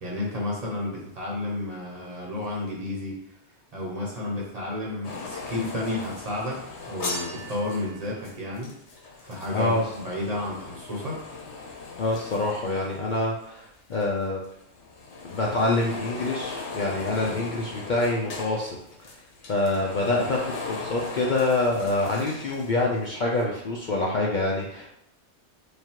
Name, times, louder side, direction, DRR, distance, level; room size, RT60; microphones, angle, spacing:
voice 1, 0.0-3.2 3.7-6.6 6.9-8.7 9.2-11.2, left 2 dB, 35° right, -4 dB, 1.0 m, -31 dB
sound 1, 5.0-13.7 13.9-23.1 23.4-23.5, left 3 dB, 80° left, 1.1 m, -38 dB
voice 2, 9.5-9.8 12.0-14.4 15.2-19.1 19.5-24.9, left 2 dB, 55° left, -2 dB, 0.6 m, -26 dB
3.4 x 2.4 x 4.5 m, 0.75 s
omnidirectional pair, 1.2 m